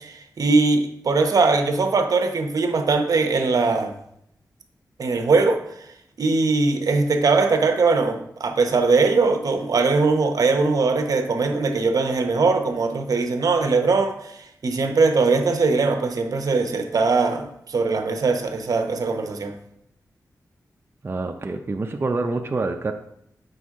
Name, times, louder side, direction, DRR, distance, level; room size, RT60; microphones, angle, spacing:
voice 1, 0.0-3.9 5.0-5.6 6.2-19.6, right 3 dB, 65° right, 6 dB, 0.8 m, -21 dB
voice 2, 21.0-22.9, right 3 dB, 35° right, 3 dB, 0.5 m, -26 dB
7.7 x 5.2 x 3.6 m, 0.75 s
wide cardioid pair, 85°, 7 cm